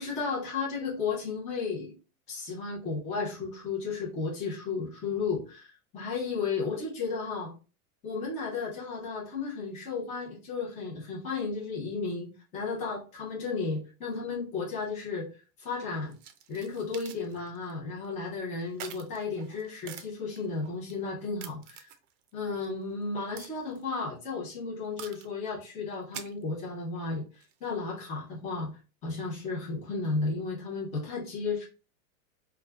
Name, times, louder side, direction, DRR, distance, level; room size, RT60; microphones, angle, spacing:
voice 1, 0.0-1.9 2.3-7.5 8.0-15.3 15.6-16.1 16.5-21.9 22.3-28.7 29.0-31.6, left 4 dB, 15° left, -4 dB, 0.6 m, -34 dB
sound 1, 16.1-17.7 18.0-18.1 18.6-20.9 21.4-22.3 22.6-22.7 23.4-24.0 25.0-25.5 25.9-26.7 27.4-27.7, right 9 dB, 60° right, 0.5 m, -46 dB
2.4 x 2.2 x 3.3 m, 0.34 s
supercardioid pair, 155°, 44 cm